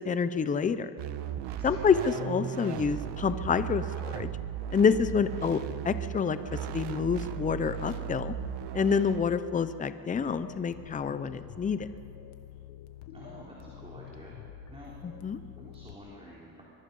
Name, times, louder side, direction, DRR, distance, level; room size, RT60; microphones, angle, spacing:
voice 1, 0.0-0.9 1.6-3.8 4.1-4.3 4.7-5.6 5.8-6.4 6.7-8.3 8.7-11.9 15.0-15.4, left 6 dB, 15° left, 12 dB, 0.6 m, -27 dB
sound 1, 1.0-9.2, right 9 dB, 55° right, 1.2 m, -36 dB
voice 2, 1.5-1.9 13.1-14.4 14.7-14.9 15.6-16.6, equal, 10° right, -5 dB, 3.6 m, -49 dB
sound 2, 10.1-15.9, left 9 dB, 85° left, 1.6 m, -47 dB
24.0 x 22.5 x 5.4 m, 2.5 s
cardioid pair, 135°, 49 cm